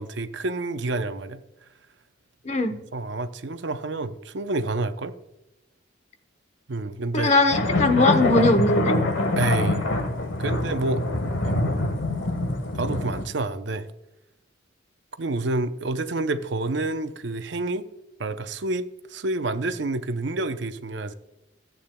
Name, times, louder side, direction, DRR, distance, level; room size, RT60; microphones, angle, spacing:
voice 1, 0.0-1.4 2.9-5.1 6.7-7.4 8.0-8.1 9.4-9.9 10.4-11.0 11.4-11.8 12.7-13.9 15.2-17.9 18.2-21.1, right 2 dB, 65° right, 0.6 m, -28 dB
voice 2, 2.4-2.7 7.1-8.9, left 2 dB, 35° left, 0.9 m, -20 dB
sound 1, 7.5-13.2, left 2 dB, 85° left, 1.4 m, -25 dB
14.5 x 8.6 x 2.2 m
head